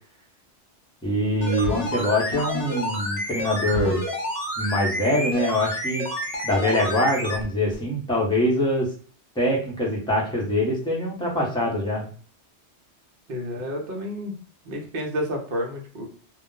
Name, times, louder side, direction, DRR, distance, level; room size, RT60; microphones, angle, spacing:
voice 1, 1.0-4.0 4.6-6.1 6.4-8.9 9.4-12.1, left 1 dB, 5° left, -3 dB, 0.7 m, -24 dB
sound 1, 1.4-7.4 7.7-7.8, left 1 dB, 65° left, 1.0 m, -29 dB
voice 2, 13.3-14.3 14.6-16.1, equal, 55° right, 0 dB, 0.9 m, -30 dB
2.4 x 2.1 x 3.7 m, 0.43 s
omnidirectional pair, 1.2 m